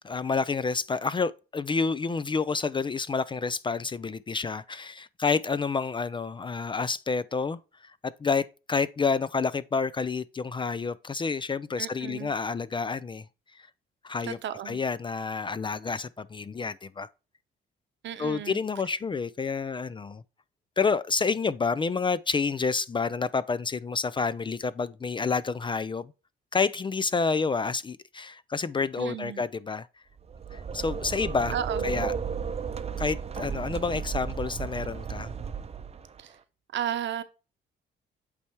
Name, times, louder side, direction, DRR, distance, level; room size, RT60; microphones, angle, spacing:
voice 1, 0.0-13.2 14.0-14.4 14.7-17.1 18.2-20.2 20.8-26.1 26.5-29.9 30.5-31.6 31.8-32.1 33.0-35.3, left 4 dB, 25° left, 0.4 m, -29 dB
voice 2, 11.8-12.3 14.2-14.8 18.0-18.6 29.0-29.4 31.5-32.1 36.2-36.3 36.7-37.2, right 10 dB, 65° right, 0.8 m, -34 dB
sound 1, 30.2-36.2, right 6 dB, 30° right, 0.6 m, -34 dB
8.4 x 3.3 x 4.5 m
cardioid pair, 90°, 20 cm